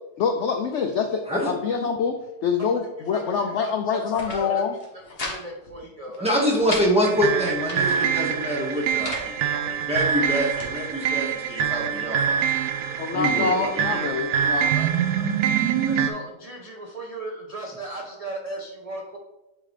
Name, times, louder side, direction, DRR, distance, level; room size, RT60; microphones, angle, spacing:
voice 1, 0.2-2.1 2.4-4.8 13.0-14.7, left 6 dB, 75° left, 5 dB, 0.6 m, -25 dB
voice 2, 3.1-4.6 5.2-6.6 14.8-14.9 15.9-19.2, right 2 dB, 50° right, 0 dB, 0.4 m, -36 dB
sound 1, 3.9-4.4 4.7-5.4 5.7-5.8 6.1-6.9 7.4-8.0 8.7-9.3 9.9-10.7, left 2 dB, 40° left, 1.3 m, -36 dB
voice 3, 6.2-12.3 12.6-14.1, equal, 5° right, -4 dB, 1.4 m, -26 dB
sound 2, 7.0-16.1, right 8 dB, 85° right, 1.2 m, -25 dB
8.8 x 3.7 x 3.3 m, 0.96 s
omnidirectional pair, 1.8 m